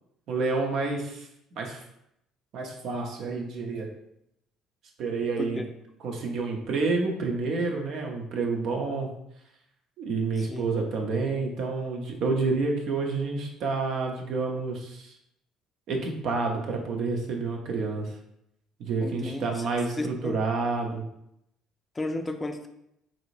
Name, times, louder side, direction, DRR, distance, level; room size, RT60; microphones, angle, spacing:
voice 1, 0.3-1.3 1.5-1.8 2.5-3.9 5.0-5.6 6.0-9.1 10.0-15.1 15.9-18.2 18.8-21.0, right 3 dB, 60° right, 2 dB, 0.7 m, -29 dB
voice 2, 19.0-19.6 20.0-20.4 21.9-22.7, left 2 dB, 20° left, 6 dB, 0.5 m, -33 dB
4.0 x 2.7 x 3.1 m, 0.78 s
hypercardioid pair, 55°, 0 cm